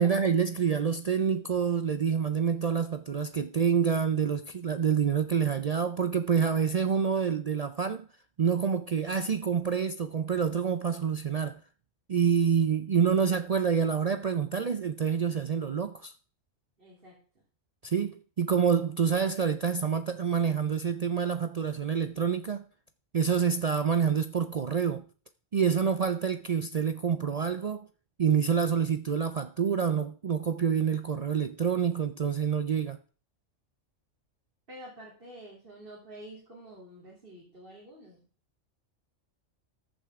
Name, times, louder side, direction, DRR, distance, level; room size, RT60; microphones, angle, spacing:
voice 1, 0.0-8.1 8.4-11.6 12.1-16.1 17.8-22.6 23.1-25.0 25.5-27.9 28.2-33.0, right 7 dB, 65° right, 0.3 m, -27 dB
voice 2, 16.8-17.2 34.7-38.2, right 1 dB, 45° right, 3.3 m, -48 dB
14.0 x 7.8 x 3.6 m
omnidirectional pair, 1.3 m